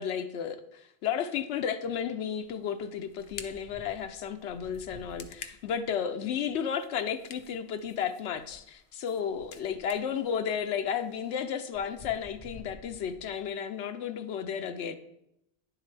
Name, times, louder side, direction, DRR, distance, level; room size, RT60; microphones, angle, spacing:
voice 1, 0.0-15.0, left 8 dB, 85° left, 7 dB, 0.9 m, -33 dB
sound 1, 1.9-2.1 2.4-13.4, left 2 dB, 35° left, 1.2 m, -54 dB
sound 2, 2.2-11.4, left 6 dB, 60° left, 0.8 m, -52 dB
10.0 x 7.4 x 3.3 m, 0.82 s
omnidirectional pair, 1.1 m